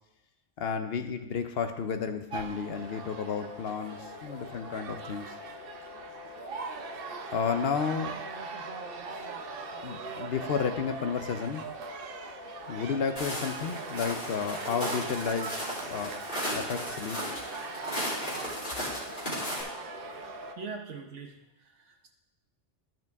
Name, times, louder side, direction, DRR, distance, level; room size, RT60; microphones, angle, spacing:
voice 1, 0.6-5.3 7.3-8.2 9.8-11.6 12.7-16.1 16.5-17.2, left 6 dB, 60° left, 7 dB, 0.9 m, -32 dB
sound 1, 2.3-20.5, right 5 dB, 55° right, 0.8 m, -41 dB
sound 2, 2.6-20.6, left 8 dB, 80° left, 1.0 m, -47 dB
Walk footsteps, 13.2-19.6, equal, 40° left, 3.1 m, -36 dB
voice 2, 20.5-22.1, right 4 dB, 75° right, 2 dB, 1.3 m, -42 dB
13.0 x 6.0 x 3.5 m, 0.95 s
omnidirectional pair, 1.2 m